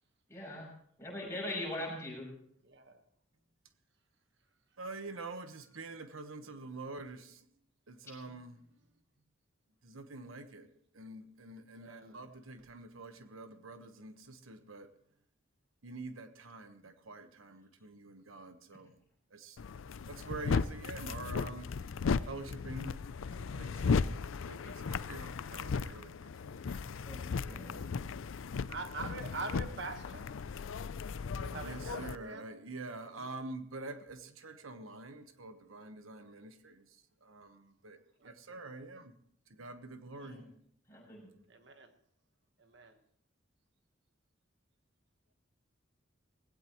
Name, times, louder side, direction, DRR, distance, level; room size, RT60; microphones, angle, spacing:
voice 1, 0.3-0.7 1.0-2.3 27.0-27.8 40.1-40.5 40.9-41.3, left 1 dB, 15° left, -4 dB, 6.8 m, -41 dB
voice 2, 1.4-1.9 2.6-3.0 11.7-12.3 27.5-28.0 28.7-30.3 31.3-32.5 33.2-33.3 38.2-38.6 40.2-40.5 41.5-41.9 42.6-43.0, right 3 dB, 60° right, 7 dB, 1.3 m, -45 dB
voice 3, 4.8-7.5 7.9-8.6 9.8-10.7 10.9-14.9 15.8-19.0 19.3-19.6 20.1-21.7 22.2-22.9 23.4-24.1 24.5-26.8 31.6-39.2 39.5-40.4, right 3 dB, 85° right, 9 dB, 1.2 m, -46 dB
sound 1, 19.6-32.2, left 5 dB, 75° left, 0.4 m, -36 dB
18.5 x 16.5 x 3.1 m, 0.64 s
head